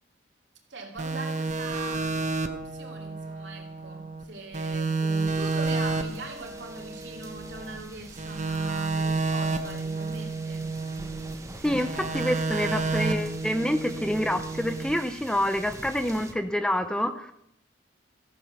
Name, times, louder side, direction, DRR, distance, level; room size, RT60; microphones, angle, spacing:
voice 1, 0.7-2.2 2.5-10.7, right 2 dB, 75° right, 2.7 m, -41 dB
sound 1, 1.0-4.2 4.5-7.8 8.2-11.4 11.6-14.9, right 3 dB, 40° right, 1.0 m, -30 dB
sound 2, 5.1-16.3, right 2 dB, 15° right, 1.2 m, -45 dB
voice 2, 11.6-17.3, equal, 5° left, 0.6 m, -27 dB
14.5 x 7.8 x 6.5 m
head